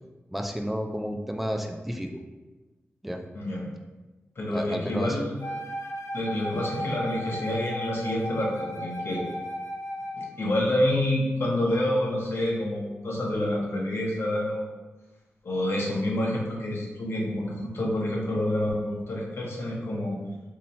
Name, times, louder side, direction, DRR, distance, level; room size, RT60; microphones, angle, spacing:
voice 1, 0.3-2.2 3.0-3.2 4.5-5.2 6.5-6.6, equal, 5° right, 4 dB, 0.3 m, -31 dB
voice 2, 3.3-3.7 4.4-5.5 6.1-9.2 10.1-14.6 15.4-20.2, left 1 dB, 65° left, -3 dB, 0.9 m, -28 dB
Wind instrument woodwind instrument, 5.4-10.4, equal, 90° left, 0.4 m, -35 dB
2.8 x 2.6 x 4.1 m, 1.2 s
wide cardioid pair, 90°, 5 cm